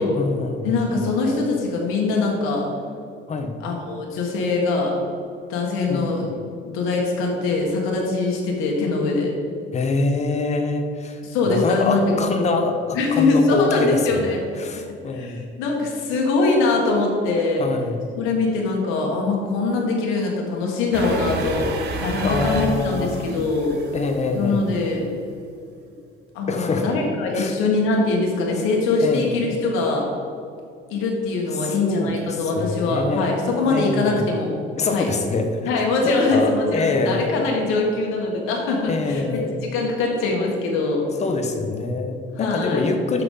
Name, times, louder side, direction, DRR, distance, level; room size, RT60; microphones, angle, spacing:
voice 1, 0.1-0.8 3.3-3.5 5.9-6.0 9.7-11.2 11.5-14.2 14.6-15.5 17.6-18.1 22.2-23.3 23.9-24.7 26.5-26.8 27.3-27.5 29.0-29.4 31.5-33.3 33.7-34.3 34.8-37.3 38.9-39.5 41.2-43.2, left 3 dB, 35° left, 5 dB, 0.9 m, -25 dB
voice 2, 0.6-2.7 3.6-5.0 5.5-6.3 6.6-9.3 11.2-12.1 12.9-14.4 14.7-14.8 15.1-17.7 18.1-23.8 24.3-25.0 26.3-30.1 30.9-34.5 34.9-35.1 35.6-41.0 42.4-42.8, left 3 dB, 85° left, -1 dB, 1.6 m, -22 dB
sound 1, 20.9-24.8, right 3 dB, 55° right, 1.0 m, -31 dB
6.0 x 5.8 x 5.5 m, 2.4 s
cardioid pair, 120°, 21 cm